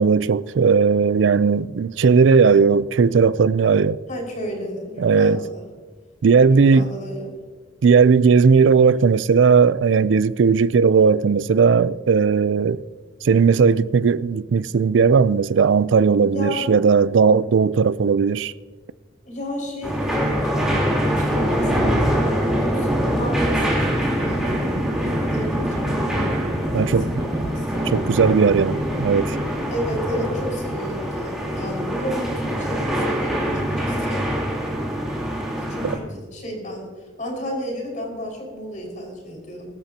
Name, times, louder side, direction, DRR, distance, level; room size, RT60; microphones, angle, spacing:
voice 1, 0.0-4.0 5.0-5.4 6.2-6.9 7.8-12.8 13.2-18.5 26.7-27.1 27.9-29.4 35.8-35.9, right 5 dB, 80° right, 0.4 m, -17 dB
voice 2, 4.1-5.7 6.5-7.3 16.3-16.6 19.2-24.8 25.1-26.9 27.2-27.9 29.7-34.2 35.4-36.9 37.2-39.7, equal, 45° left, 5.3 m, -32 dB
sound 1, 19.8-36.0, equal, 5° right, 3.5 m, -24 dB
Livestock farm animals working animals, 22.7-31.2, equal, 25° right, 2.2 m, -30 dB
22.5 x 13.0 x 2.9 m
head